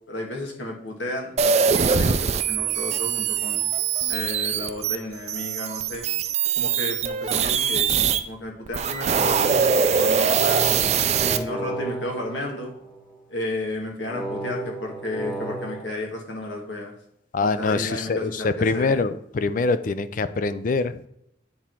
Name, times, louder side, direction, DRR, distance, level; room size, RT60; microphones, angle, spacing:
voice 1, 0.1-3.6 4.1-6.0 6.6-9.4 9.9-10.6 11.2-12.7 13.3-16.9 17.4-19.0, left 1 dB, 90° left, 1 dB, 1.6 m, -33 dB
sound 1, 1.4-8.2 8.7-11.4, right 6 dB, 35° right, 0.4 m, -22 dB
sound 2, 8.9-13.2 14.1-15.8, right 2 dB, 5° right, 0.8 m, -33 dB
voice 2, 17.3-21.0, left 3 dB, 45° left, 13 dB, 0.4 m, -24 dB
8.7 x 3.6 x 4.4 m, 0.76 s
head